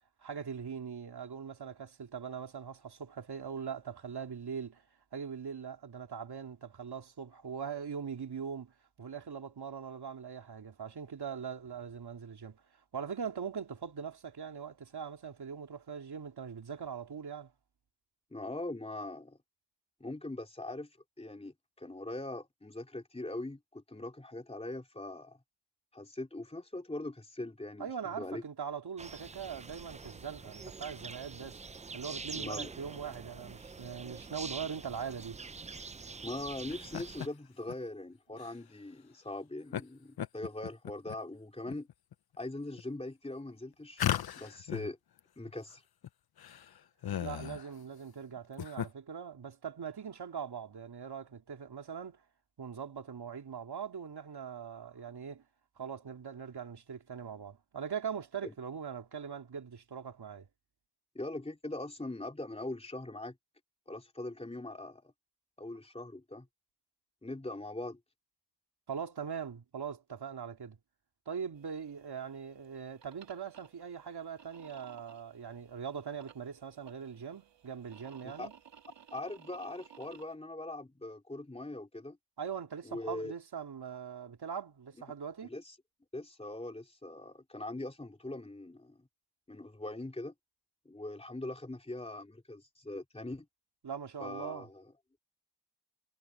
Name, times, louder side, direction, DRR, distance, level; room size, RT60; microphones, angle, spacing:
voice 1, 0.2-4.8 5.1-12.6 12.9-17.5 27.8-31.6 31.9-35.4 47.2-52.2 52.6-55.4 55.8-60.5 68.9-70.8 71.3-78.5 82.4-85.5 93.8-94.7, right 7 dB, 65° right, 2.8 m, -41 dB
voice 2, 18.3-19.4 20.0-25.4 25.9-28.4 32.3-32.7 36.2-41.9 42.4-44.0 44.4-45.0 45.4-45.8 58.4-58.5 61.1-63.4 63.9-65.1 65.6-66.5 67.2-68.0 78.2-78.5 79.1-82.2 82.8-83.3 85.4-85.7 86.1-89.1 89.5-90.3 90.8-93.5 94.2-94.8, left 2 dB, 15° left, 3.0 m, -41 dB
sound 1, 29.0-37.3, right 4 dB, 15° right, 0.4 m, -45 dB
sound 2, 36.7-37.3 37.7-37.8 38.4-38.5 39.7-39.8 40.2-41.2 41.7-42.1 42.8-42.9 44.0-44.9 45.2-45.3 45.5-45.6 46.0-46.1 46.4-47.7 48.4-48.9, left 10 dB, 60° left, 0.7 m, -36 dB
sound 3, 71.5-80.3, right 8 dB, 85° right, 2.0 m, -58 dB
cardioid pair, 80°, 42 cm